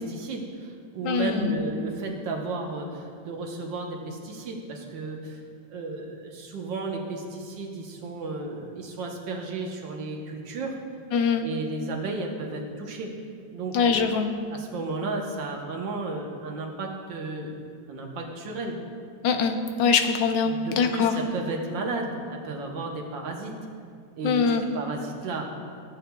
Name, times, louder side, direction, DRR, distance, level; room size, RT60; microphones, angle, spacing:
voice 1, 0.0-5.4 5.7-10.8 11.4-13.1 13.5-13.8 14.5-17.5 17.9-18.8 20.4-23.6 24.2-25.5, right 3 dB, 85° right, 1 dB, 1.8 m, -33 dB
voice 2, 1.0-1.6 11.1-11.5 13.7-14.3 19.2-21.1 24.2-24.6, left 6 dB, 90° left, 6 dB, 1.4 m, -23 dB
14.0 x 8.2 x 2.3 m, 2.2 s
omnidirectional pair, 2.0 m